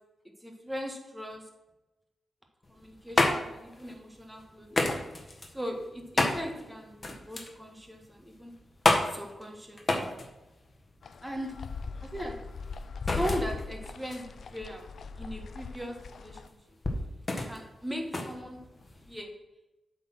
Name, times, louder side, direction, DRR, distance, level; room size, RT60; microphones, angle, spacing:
voice 1, 0.4-1.4 2.7-4.9 5.5-8.5 9.1-9.8 11.2-11.5 12.0-12.4 13.1-14.9 15.1-16.6 17.5-18.6 19.1-19.3, equal, 10° right, 2 dB, 1.7 m, -38 dB
sound 1, 2.6-19.2, left 2 dB, 35° left, 1.4 m, -32 dB
sound 2, 11.0-16.5, left 4 dB, 70° left, 0.4 m, -39 dB
7.8 x 4.3 x 6.1 m, 1.0 s
cardioid pair, 65°, 0 cm